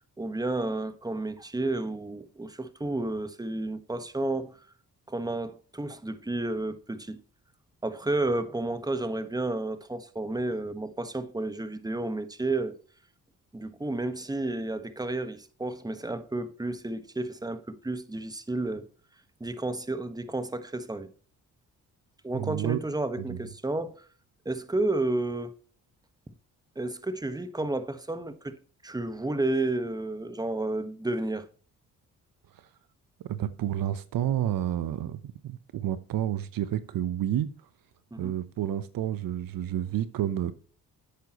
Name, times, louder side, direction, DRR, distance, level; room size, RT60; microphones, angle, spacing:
voice 1, 0.0-4.6 5.1-7.2 7.8-12.7 13.5-18.8 19.4-21.1 22.2-24.0 24.4-25.5 26.7-28.6 28.8-31.5 38.1-38.3, right 2 dB, 10° right, 1.3 m, -31 dB
voice 2, 22.3-22.8 23.3-23.4 33.3-37.5 38.2-40.5, right 11 dB, 70° right, 0.9 m, -30 dB
10.5 x 8.5 x 3.0 m
cardioid pair, 65°, 35 cm